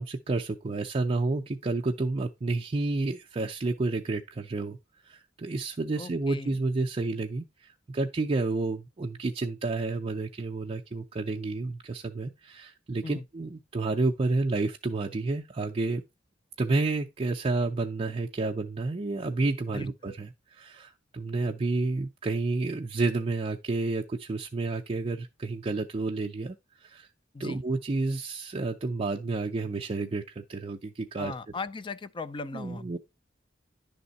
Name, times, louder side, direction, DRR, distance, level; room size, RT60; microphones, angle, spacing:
voice 1, 0.0-4.8 5.0-16.0 16.6-27.1 27.4-31.3 32.5-33.0, right 3 dB, 30° right, 0.4 m, -30 dB
voice 2, 6.0-6.6 13.0-13.3 19.7-20.1 27.3-27.6 31.2-32.8, left 3 dB, 25° left, 0.4 m, -38 dB
10.5 x 3.5 x 4.0 m
head